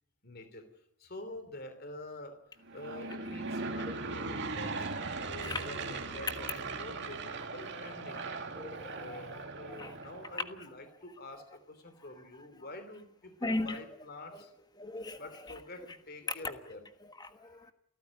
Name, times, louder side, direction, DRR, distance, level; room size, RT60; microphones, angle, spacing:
voice 1, 0.2-0.7 1.0-8.3 9.0-14.5 15.2-16.8 17.4-17.7, left 1 dB, 45° left, 3.1 m, -47 dB
Aircraft / Engine, 2.6-10.6, right 3 dB, 55° right, 2.5 m, -39 dB
voice 2, 5.3-5.7 8.5-10.0 10.3-10.4 12.3-12.4 13.4-13.8 14.3-14.5 14.7-15.5 17.0-17.7, left 2 dB, 20° left, 1.4 m, -39 dB
29.0 x 14.5 x 9.6 m
head